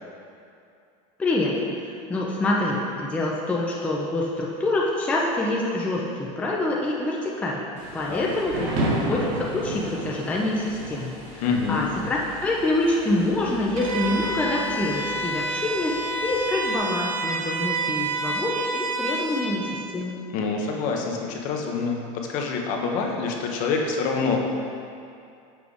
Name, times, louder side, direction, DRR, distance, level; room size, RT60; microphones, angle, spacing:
voice 1, 1.2-1.5 1.8-7.6 7.9-8.7 9.1-20.2, left 2 dB, 10° left, -3 dB, 0.4 m, -26 dB
Thunder / Rain, 7.8-16.8, right 1 dB, 55° right, 1.3 m, -34 dB
voice 2, 11.4-11.9 20.3-22.0 22.3-24.4, left 5 dB, 45° left, 1 dB, 0.7 m, -26 dB
Bowed string instrument, 13.8-19.5, right 2 dB, 80° right, 1.0 m, -29 dB
6.0 x 4.8 x 3.5 m, 2.5 s
supercardioid pair, 145°, 18 cm